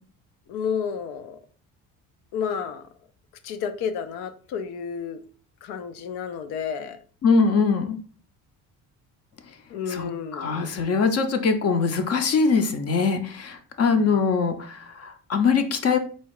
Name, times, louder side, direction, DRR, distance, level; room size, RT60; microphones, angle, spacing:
voice 1, 0.5-1.4 2.3-2.8 3.4-5.2 5.6-7.0 9.7-10.7 13.9-14.1, left 7 dB, 90° left, 0.7 m, -31 dB
voice 2, 7.2-8.0 9.9-16.0, left 5 dB, 45° left, 0.6 m, -22 dB
4.2 x 2.4 x 4.6 m
cardioid pair, 140°, 36 cm